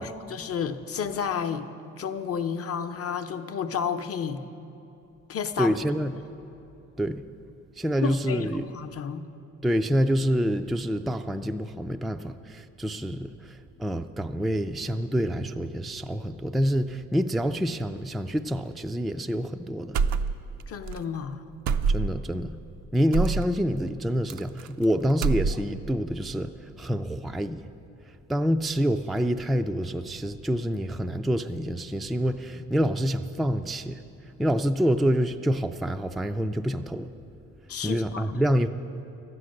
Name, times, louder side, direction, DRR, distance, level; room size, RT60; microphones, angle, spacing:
voice 1, 0.0-4.4 5.3-5.8 8.0-9.2 20.7-21.5 37.7-38.4, left 7 dB, 50° left, 8 dB, 0.7 m, -31 dB
voice 2, 5.6-6.1 7.0-7.2 7.8-8.6 9.6-20.0 21.9-22.6 22.9-27.6 28.3-34.0 34.4-37.1 37.8-38.7, equal, ahead, 7 dB, 0.3 m, -27 dB
sound 1, 19.9-20.6 20.9-21.0 21.7-22.3 23.1-23.5 24.3-24.8 25.1-25.9, right 5 dB, 70° right, 0.5 m, -25 dB
12.5 x 9.7 x 6.5 m, 2.9 s
cardioid pair, 90°, 30 cm